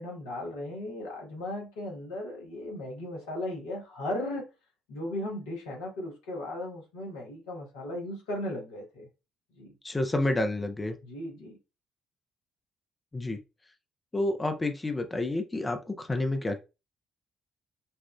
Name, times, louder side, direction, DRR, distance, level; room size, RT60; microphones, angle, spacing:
voice 1, 0.0-4.5 4.9-9.1 9.5-9.7 11.0-11.6, left 1 dB, 70° left, 1.1 m, -36 dB
voice 2, 9.8-11.0 13.1-13.4 14.1-16.6, left 2 dB, 20° left, 0.6 m, -29 dB
5.5 x 2.4 x 2.3 m
figure-of-eight pair, 45°, 0 cm